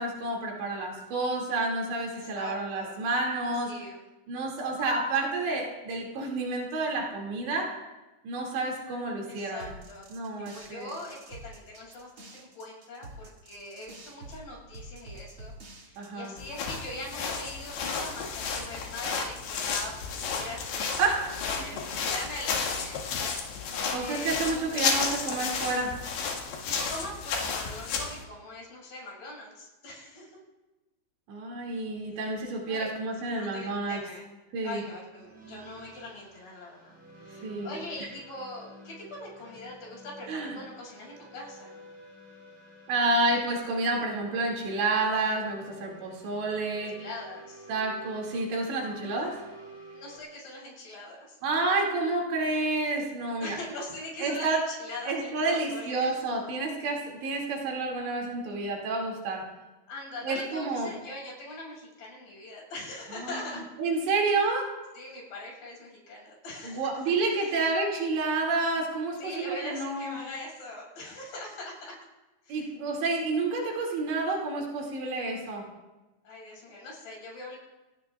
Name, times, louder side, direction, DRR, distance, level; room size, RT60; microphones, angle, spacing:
voice 1, 0.0-3.7 4.3-7.7 8.2-9.7 10.1-10.9 16.0-16.4 21.0-21.3 23.9-25.9 31.3-34.0 34.5-34.8 37.4-38.1 40.3-40.6 42.9-46.9 47.7-49.4 51.4-53.6 54.2-54.6 55.1-59.4 60.2-60.9 63.2-63.5 63.8-64.7 66.6-70.2 72.5-75.6, right 3 dB, 75° right, -1 dB, 4.8 m, -29 dB
voice 2, 2.1-3.0 3.6-4.0 9.3-10.1 10.5-15.5 15.8-23.0 23.7-25.6 26.6-30.4 32.7-32.9 33.2-34.3 34.6-37.0 37.2-41.8 46.7-47.7 49.9-51.4 53.4-56.1 59.9-63.7 64.9-67.0 67.3-67.6 69.2-72.0 72.4-72.7 76.2-77.6, left 2 dB, 55° left, -3 dB, 8.1 m, -42 dB
sound 1, 9.6-16.4, right 1 dB, 40° right, 2.0 m, -47 dB
sound 2, 16.4-28.2, left 5 dB, 75° left, 4.1 m, -32 dB
sound 3, 35.1-50.2, right 1 dB, 5° right, 5.7 m, -50 dB
28.5 x 17.5 x 2.5 m, 1.1 s
omnidirectional pair, 5.2 m